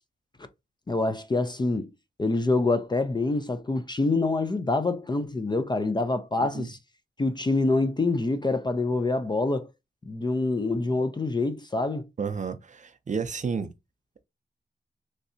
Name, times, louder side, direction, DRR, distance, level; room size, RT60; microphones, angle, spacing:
voice 1, 0.9-1.9 2.2-6.8 7.2-9.7 10.1-12.1, left 2 dB, 25° left, 0.4 m, -26 dB
voice 2, 12.2-13.7, right 5 dB, 40° right, 0.4 m, -31 dB
3.2 x 2.7 x 2.6 m
wide cardioid pair, 90°, 19 cm